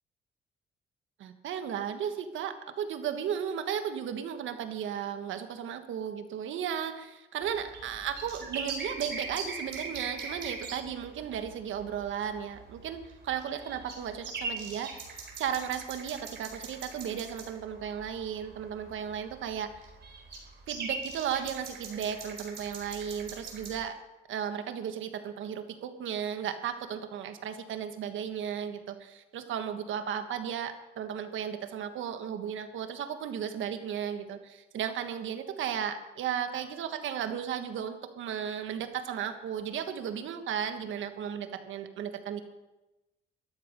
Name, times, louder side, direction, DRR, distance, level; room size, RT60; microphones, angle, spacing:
voice 1, 1.2-15.0 15.4-19.7 20.7-24.0 24.3-42.4, right 8 dB, 80° right, 8 dB, 1.4 m, -35 dB
sound 1, 7.4-23.8, right 4 dB, 55° right, 4.3 m, -42 dB
13.5 x 12.0 x 5.3 m, 1.0 s
cardioid pair, 90°, 20 cm